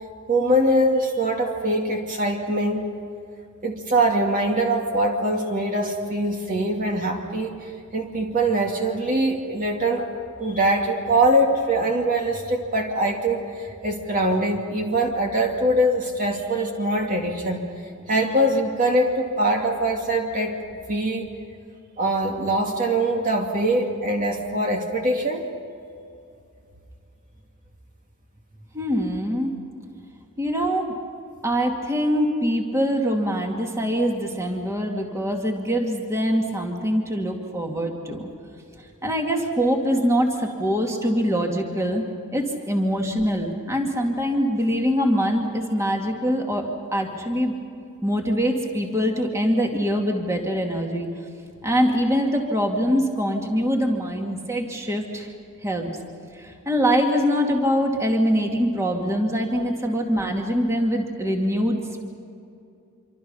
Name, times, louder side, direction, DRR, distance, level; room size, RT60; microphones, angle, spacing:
voice 1, 0.3-2.9 3.6-17.6 18.1-20.6 20.9-21.3 22.0-25.5, right 1 dB, 35° right, 1 dB, 2.3 m, -23 dB
voice 2, 28.7-29.5 30.4-30.9 31.4-38.3 39.0-42.0 42.3-47.5 48.0-51.1 51.6-55.3 55.6-55.9 56.3-62.0, equal, 15° right, 1 dB, 2.4 m, -23 dB
27.0 x 25.5 x 5.6 m, 2.5 s
head